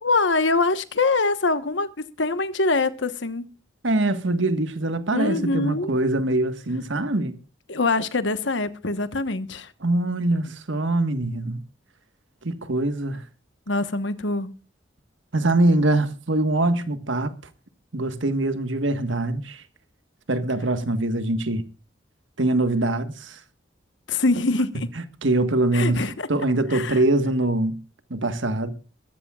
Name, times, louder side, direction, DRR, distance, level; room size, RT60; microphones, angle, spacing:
voice 1, 0.0-1.9 2.2-3.5 5.1-5.9 7.7-9.7 13.7-14.6 24.1-24.9 25.7-26.3 26.7-27.0, left 3 dB, 75° left, 1.3 m, -24 dB
voice 2, 3.8-7.4 9.8-11.6 12.4-13.2 15.3-17.3 17.9-19.6 20.3-21.6 22.4-23.4 25.2-27.8 28.1-28.7, right 2 dB, 80° right, 1.6 m, -23 dB
22.0 x 13.5 x 2.4 m
head